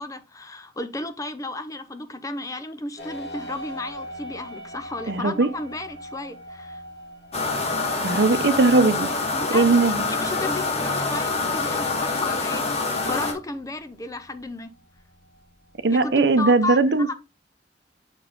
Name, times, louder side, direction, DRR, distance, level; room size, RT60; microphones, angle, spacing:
voice 1, 0.0-6.8 9.3-14.7 15.9-17.1, left 2 dB, 20° left, 0.7 m, -33 dB
sound 1, 3.0-16.6, equal, 75° left, 2.9 m, -43 dB
voice 2, 5.1-5.5 8.0-9.1 9.5-10.0 15.8-17.1, right 3 dB, 70° right, 0.7 m, -19 dB
sound 2, 7.3-13.3, left 3 dB, 40° left, 1.5 m, -26 dB
6.9 x 4.6 x 3.8 m
head